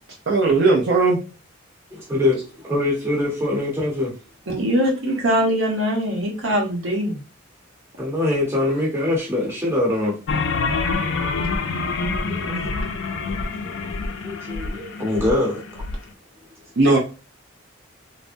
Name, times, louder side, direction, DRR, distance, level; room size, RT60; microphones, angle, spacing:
voice 1, 0.3-1.2 16.8-17.0, right 3 dB, 55° right, 0.5 m, -17 dB
voice 2, 1.9-4.1 8.0-10.2 12.3-12.5 13.2-13.8 14.2-15.6, left 2 dB, 10° right, 1.0 m, -23 dB
voice 3, 4.5-7.2 12.4-12.7, equal, 75° right, 0.9 m, -22 dB
sound 1, 10.3-16.0, left 4 dB, 65° left, 0.4 m, -26 dB
3.3 x 2.0 x 2.5 m
head